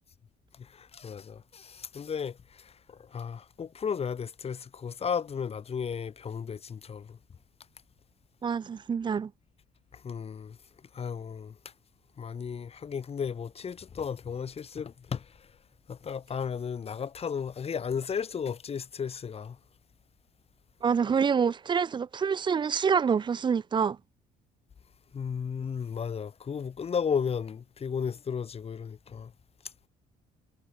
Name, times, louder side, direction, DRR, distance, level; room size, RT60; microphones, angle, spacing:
voice 1, 0.7-2.4 2.6-7.2 10.0-10.6 10.9-11.5 12.2-15.2 15.9-19.6 25.1-29.3, left 7 dB, 35° left, 2.7 m, -34 dB
voice 2, 8.4-9.3 20.8-24.0, right 6 dB, 25° right, 0.5 m, -26 dB
cardioid pair, 110°, 17 cm